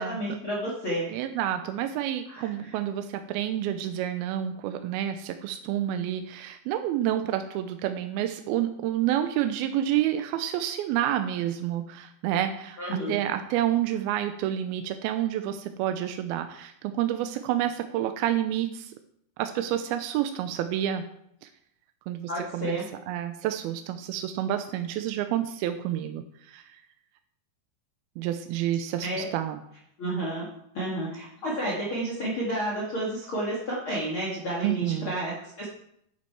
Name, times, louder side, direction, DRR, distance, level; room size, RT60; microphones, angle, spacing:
voice 1, 0.0-1.1 2.3-2.8 12.8-13.2 22.3-22.9 29.0-29.3 30.0-30.5 30.7-35.7, right 1 dB, 40° left, -4 dB, 2.0 m, -31 dB
voice 2, 1.1-18.9 19.4-21.0 22.1-22.8 23.1-26.6 28.2-29.6 34.6-35.1, right 11 dB, 80° right, 8 dB, 2.3 m, -29 dB
11.0 x 8.3 x 4.6 m, 0.72 s
omnidirectional pair, 4.9 m